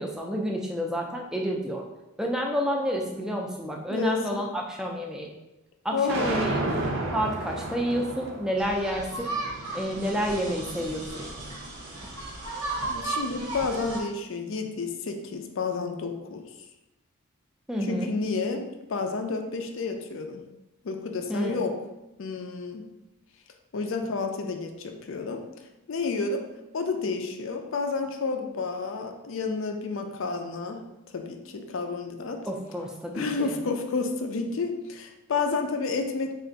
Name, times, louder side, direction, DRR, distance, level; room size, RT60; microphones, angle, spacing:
voice 1, 0.0-1.8 2.2-5.3 5.8-6.6 7.1-9.3 9.7-11.2 17.7-18.1 21.3-21.6 32.4-33.6, equal, 5° right, 0 dB, 0.3 m, -29 dB
voice 2, 3.9-4.4 5.9-6.4 12.9-16.4 17.8-20.4 20.8-21.8 22.2-22.9 23.7-25.4 25.9-26.4 26.7-30.9 31.1-32.4 33.1-36.4, left 4 dB, 60° left, 5 dB, 0.4 m, -30 dB
sound 1, 6.1-12.2, right 2 dB, 55° right, 0.5 m, -34 dB
sound 2, 8.6-14.0, right 2 dB, 85° right, 0.8 m, -35 dB
3.4 x 2.5 x 3.9 m, 0.96 s
head